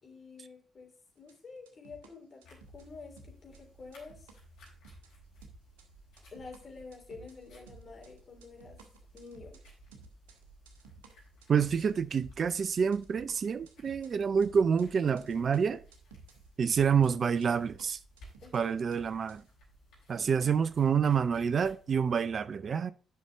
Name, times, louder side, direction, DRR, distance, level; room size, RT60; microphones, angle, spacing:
voice 1, 0.0-2.4 2.7-4.3 6.3-8.8 9.1-9.6 16.6-16.8 18.4-18.8, left 4 dB, 45° left, 3.6 m, -49 dB
sound 1, 1.2-2.1 2.4-2.9 3.2-4.4 4.7-5.1 5.4-5.9 6.2-17.1 17.4-17.9 18.2-19.5, right 4 dB, 80° right, 1.1 m, -55 dB
sound 2, 2.4-22.0, right 1 dB, 70° left, 4.1 m, -58 dB
voice 2, 11.5-15.8 16.6-18.0 18.5-19.4 20.1-22.9, right 6 dB, 50° right, 0.4 m, -28 dB
11.0 x 5.7 x 3.6 m
figure-of-eight pair, 40°, 0 cm